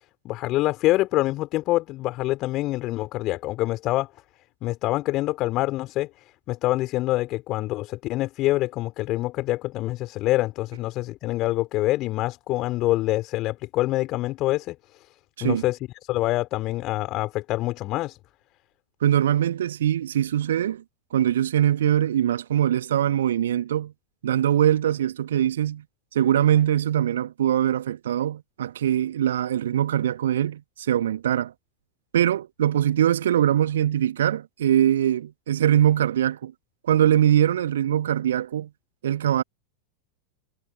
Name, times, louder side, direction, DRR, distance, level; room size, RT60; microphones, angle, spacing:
voice 1, 0.2-4.1 4.6-15.1 15.4-18.2, left 17 dB, 35° left, 4.6 m, -26 dB
voice 2, 19.0-20.8 21.1-23.9 24.2-25.8 26.1-31.5 32.1-36.5 36.8-38.7 39.0-39.4, right 10 dB, 60° right, 1.6 m, -22 dB
figure-of-eight pair, 90°, 0 cm